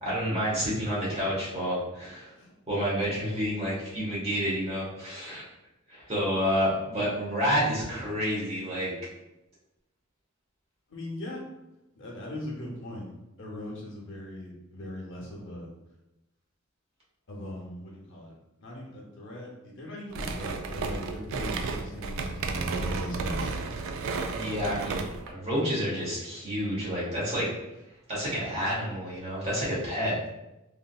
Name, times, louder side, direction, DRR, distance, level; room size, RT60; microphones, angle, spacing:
voice 1, 0.0-2.3 2.7-5.4 5.9-8.9 24.3-27.5 28.1-30.1, equal, 30° right, -7 dB, 1.3 m, -29 dB
voice 2, 10.9-11.5 11.9-13.1 13.4-15.7 17.3-18.3 18.6-23.5, left 1 dB, 65° left, -2 dB, 0.8 m, -39 dB
sound 1, 20.1-25.3, right 4 dB, 65° right, 0.3 m, -32 dB
3.6 x 2.6 x 2.3 m, 0.94 s
head